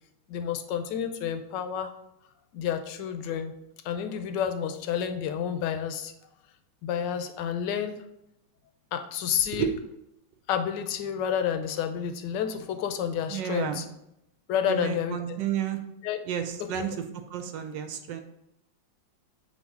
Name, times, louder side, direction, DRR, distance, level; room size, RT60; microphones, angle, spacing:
voice 1, 0.3-1.9 2.5-3.5 3.8-6.1 6.8-8.0 8.9-9.7 10.5-13.8 14.5-15.2 16.0-16.2 16.6-16.7, left 8 dB, 75° left, 7 dB, 1.2 m, -30 dB
voice 2, 13.3-13.8 14.6-15.8 16.3-17.0 17.3-18.2, right 9 dB, 75° right, 6 dB, 1.2 m, -31 dB
7.9 x 2.7 x 4.6 m, 0.82 s
omnidirectional pair, 2.1 m